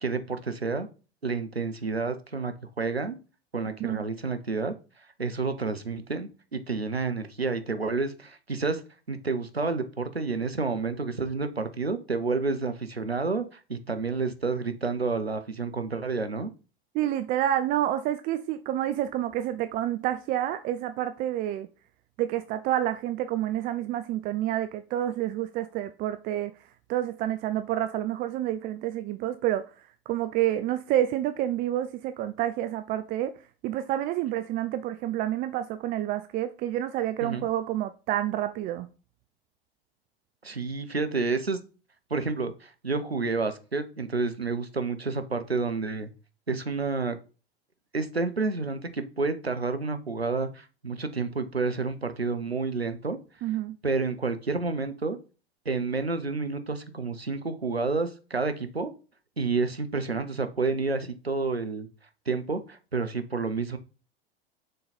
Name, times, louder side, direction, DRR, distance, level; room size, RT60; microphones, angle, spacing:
voice 1, 0.0-0.9 1.2-3.2 3.5-4.7 5.2-8.8 9.1-16.5 37.2-37.5 40.4-41.6 42.1-46.1 46.5-47.2 47.9-53.2 53.8-55.2 55.7-58.9 59.4-61.9 62.3-63.8, right 4 dB, 90° right, 0.7 m, -29 dB
voice 2, 16.9-21.7 22.2-26.5 26.9-29.6 30.1-33.3 33.6-38.9 53.4-53.8, right 12 dB, 30° right, 0.4 m, -28 dB
6.6 x 3.8 x 4.2 m
figure-of-eight pair, 80°, 30 cm